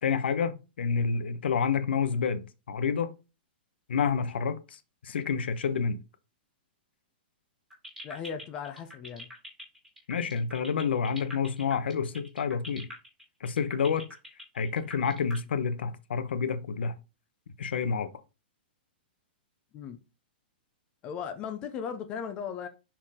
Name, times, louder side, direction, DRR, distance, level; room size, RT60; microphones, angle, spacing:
voice 1, 0.0-3.1 3.9-4.6 5.0-6.0 10.1-12.9 13.4-14.0 14.5-16.9 17.6-18.1, left 6 dB, 85° left, 1.0 m, -28 dB
sound 1, 7.7-15.4, equal, 5° right, 2.0 m, -44 dB
voice 2, 8.0-9.3 19.7-20.0 21.0-22.7, left 7 dB, 20° left, 0.5 m, -37 dB
5.9 x 4.5 x 3.6 m
hypercardioid pair, 175°, 6 cm